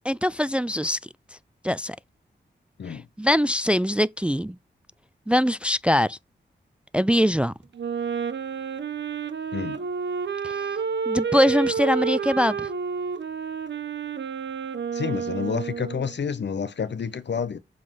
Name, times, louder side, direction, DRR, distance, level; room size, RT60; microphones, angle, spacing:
voice 1, 0.1-1.0 1.6-2.0 2.9-4.5 5.3-6.2 6.9-7.5 10.4-10.6 11.1-12.7, equal, 5° right, 0.4 m, -22 dB
Wind instrument woodwind instrument, 7.7-16.2, right 6 dB, 70° right, 1.2 m, -30 dB
voice 2, 14.9-17.6, left 6 dB, 70° left, 1.1 m, -29 dB
7.5 x 3.9 x 5.5 m
cardioid pair, 45°, 19 cm